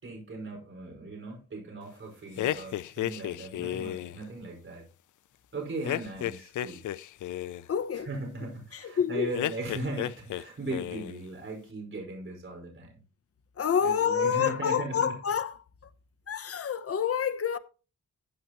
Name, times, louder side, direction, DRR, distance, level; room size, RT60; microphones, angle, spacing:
voice 1, 0.0-4.9 5.5-6.9 8.0-13.0 13.8-15.1, right 2 dB, 45° right, 5.1 m, -38 dB
sound 1, 2.4-4.2 5.8-7.7 9.3-10.4 10.7-11.2, left 12 dB, 90° left, 0.5 m, -33 dB
voice 2, 7.7-8.1 8.7-9.3 13.6-15.6 16.3-17.6, left 7 dB, 50° left, 0.9 m, -28 dB
15.0 x 8.2 x 3.0 m
wide cardioid pair, 120°, 30 cm